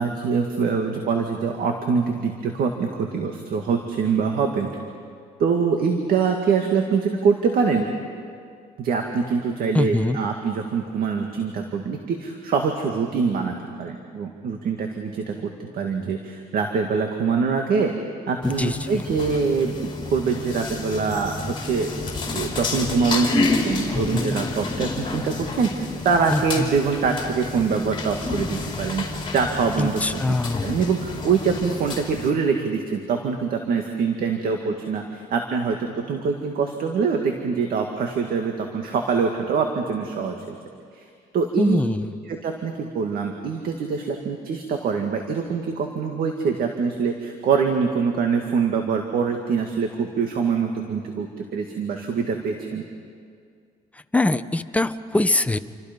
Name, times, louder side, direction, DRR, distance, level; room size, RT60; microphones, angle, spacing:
voice 1, 0.0-4.7 5.4-7.8 8.8-17.9 18.3-29.1 29.3-30.4 30.6-40.4 40.9-41.0 41.3-41.8 42.3-52.8, right 5 dB, 60° right, 3 dB, 2.1 m, -24 dB
voice 2, 9.7-10.2 18.4-19.1 23.9-24.4 26.3-26.7 29.8-30.7 41.6-42.1 53.9-55.6, left 2 dB, 10° left, 10 dB, 0.8 m, -23 dB
sound 1, 18.4-32.3, left 3 dB, 30° left, 4.3 m, -30 dB
29.0 x 25.0 x 5.4 m, 2.2 s
cardioid pair, 110°, 17 cm